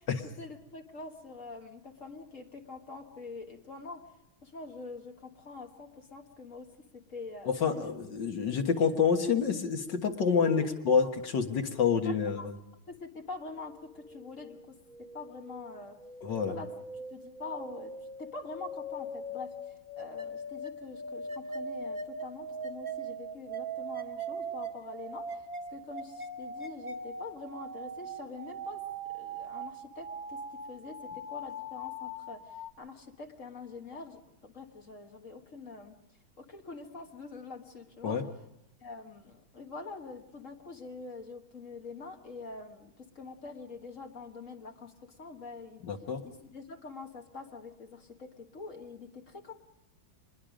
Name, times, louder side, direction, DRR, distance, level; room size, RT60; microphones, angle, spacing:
voice 1, 0.0-4.1 4.4-7.9 10.4-10.7 12.0-12.5 12.9-16.0 16.4-16.7 17.1-17.9 18.2-28.9 29.1-36.0 36.4-38.2 38.8-45.9 46.2-49.5, left 3 dB, 40° left, 3 dB, 1.8 m, -45 dB
voice 2, 7.5-12.5 16.2-16.6 38.0-38.2 45.8-46.2, left 6 dB, 60° left, 4 dB, 2.1 m, -28 dB
sound 1, 13.5-32.7, right 2 dB, 20° right, 1.8 m, -41 dB
25.0 x 21.0 x 5.1 m, 0.83 s
omnidirectional pair, 2.2 m